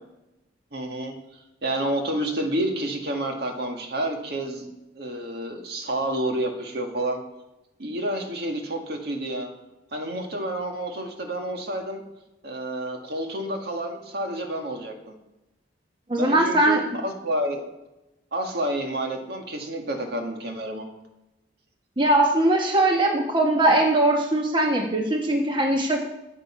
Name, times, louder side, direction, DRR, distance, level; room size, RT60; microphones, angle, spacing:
voice 1, 0.7-1.2 1.6-4.7 5.0-7.2 7.8-9.5 9.9-12.0 12.4-15.1 16.1-17.6 18.3-20.9, right 1 dB, 60° right, 3 dB, 1.9 m, -29 dB
voice 2, 16.1-16.8 22.0-26.1, right 1 dB, 25° right, 1 dB, 1.2 m, -20 dB
14.5 x 8.2 x 5.7 m, 0.97 s
head